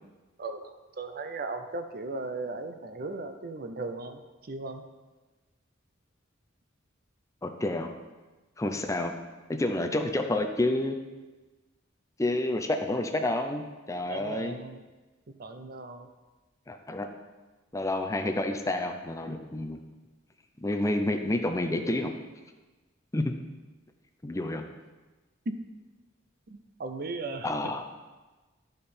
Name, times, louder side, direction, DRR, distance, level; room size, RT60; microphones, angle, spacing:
voice 1, 0.4-4.9 14.1-14.8 15.3-16.1 25.5-25.6 26.5-27.7, right 3 dB, 50° right, 7 dB, 0.6 m, -37 dB
voice 2, 7.4-7.9 8.6-9.1 9.6-11.0 12.2-14.6 16.7-17.1 17.7-19.8 20.6-22.1 23.1-23.3 24.2-24.6 27.4-27.8, left 1 dB, 15° left, 5 dB, 0.5 m, -29 dB
11.5 x 5.3 x 4.3 m, 1.2 s
head